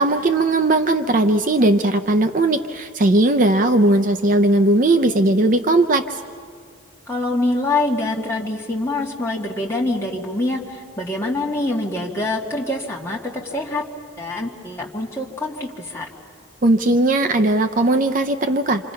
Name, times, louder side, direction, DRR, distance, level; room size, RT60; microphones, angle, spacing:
voice 1, 0.0-6.2 16.6-18.9, right 2 dB, 40° right, 8 dB, 0.6 m, -18 dB
voice 2, 7.1-13.8 14.2-16.1, left 2 dB, 15° left, -3 dB, 2.0 m, -25 dB
27.0 x 27.0 x 5.7 m, 2.2 s
head